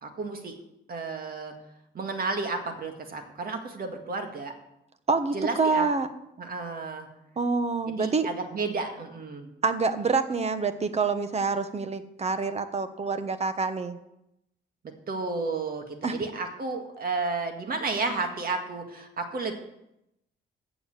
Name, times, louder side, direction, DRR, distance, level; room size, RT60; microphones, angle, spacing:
voice 1, 0.0-0.6 0.9-1.5 1.9-4.5 5.3-5.9 6.4-7.1 7.9-9.5 15.1-19.5, right 3 dB, 50° right, 5 dB, 2.0 m, -32 dB
voice 2, 5.1-6.1 7.4-8.3 9.6-14.0 16.0-16.2, right 4 dB, 30° right, 10 dB, 1.1 m, -27 dB
8.5 x 7.1 x 8.6 m, 0.83 s
cardioid pair, 90°, 20 cm